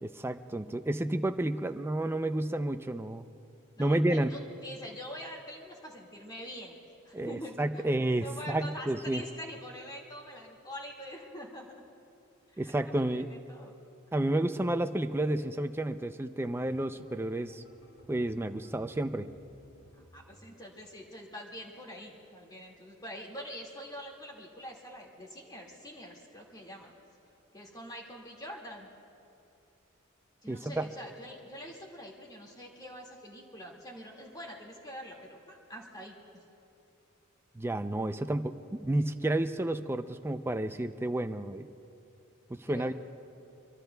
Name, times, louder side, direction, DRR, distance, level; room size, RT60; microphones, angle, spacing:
voice 1, 0.0-3.3 3.8-4.3 7.1-9.2 12.6-13.3 14.1-17.6 18.1-19.3 30.5-30.9 37.5-41.7 42.5-42.9, right 1 dB, 10° right, 9 dB, 0.5 m, -31 dB
voice 2, 3.8-6.8 7.0-7.8 8.2-11.8 12.5-13.7 19.9-26.9 27.5-28.9 30.4-36.2 42.7-42.9, equal, 20° left, -1 dB, 2.0 m, -45 dB
sound 1, 16.4-22.6 22.8-23.9 24.2-24.5 24.8-25.0, equal, 70° left, 3.4 m, -60 dB
24.5 x 24.0 x 2.3 m, 2.7 s
head